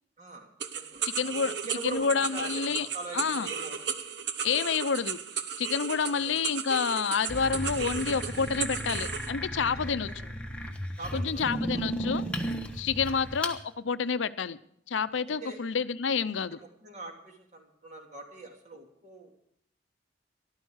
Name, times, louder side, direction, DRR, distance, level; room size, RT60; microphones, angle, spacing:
voice 1, 0.2-0.5 0.7-4.0 6.0-6.3 9.7-10.3 11.0-11.4 11.7-11.8 13.1-13.2 15.4-15.6 16.5-19.3, right 3 dB, 40° right, 2 dB, 2.9 m, -43 dB
sound 1, 0.6-9.3, right 7 dB, 60° right, 0.9 m, -35 dB
voice 2, 1.0-1.5 1.8-2.9 3.1-3.5 4.4-5.2 5.6-10.1 11.1-12.2 12.7-14.6 14.9-16.6, left 5 dB, 80° left, 14 dB, 0.6 m, -29 dB
sound 2, 7.3-13.6, equal, 5° left, 1.2 m, -35 dB
14.0 x 12.0 x 6.4 m, 0.71 s
head